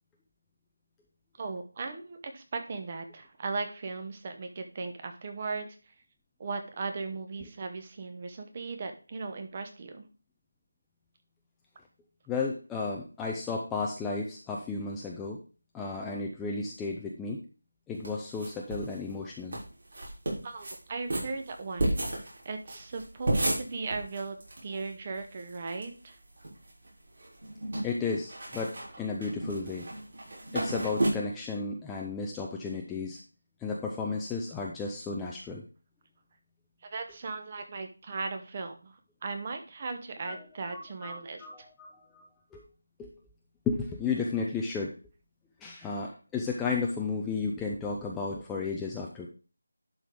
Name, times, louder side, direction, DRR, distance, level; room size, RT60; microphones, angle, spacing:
voice 1, 1.4-5.9 6.4-10.1 20.0-20.1 20.4-22.2 22.4-24.4 24.6-26.2 36.8-41.7, right 4 dB, 20° right, 6 dB, 0.9 m, -37 dB
voice 2, 12.3-15.4 15.7-17.4 17.9-19.6 27.8-29.9 30.5-33.2 33.6-35.6 40.2-40.4 40.7-42.2 42.5-42.6 43.0-43.1 43.7-45.0 45.6-49.3, left 4 dB, 5° left, -2 dB, 0.4 m, -33 dB
sound 1, 18.0-18.9 19.2-19.3 19.5-19.6 19.9-20.8 21.1-24.6 24.9-25.0 25.1-25.8 26.2-26.9 27.2-31.1, right 1 dB, 45° right, 3.9 m, -32 dB
11.0 x 3.9 x 4.8 m, 0.35 s
figure-of-eight pair, 175°, 0 cm